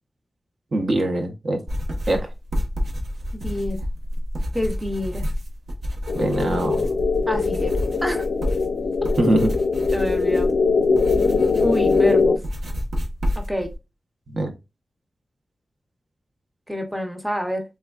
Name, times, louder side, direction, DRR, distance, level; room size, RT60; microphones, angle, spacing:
voice 1, 0.7-1.6 2.1-2.3 6.1-6.9 9.2-9.5 14.3-14.5, right 1 dB, 45° right, 3 dB, 0.6 m, -22 dB
sound 1, 1.7-13.7, equal, 85° right, 0.8 m, -29 dB
voice 2, 3.3-3.8 4.5-5.2 7.3-7.7 8.0-8.3 9.3-10.5 11.6-12.4 13.4-13.7 16.7-17.6, left 1 dB, 5° right, 4 dB, 0.6 m, -27 dB
sound 2, 6.1-12.4, left 4 dB, 70° left, 0.3 m, -21 dB
3.3 x 3.3 x 2.2 m, 0.25 s
wide cardioid pair, 135°, 0 cm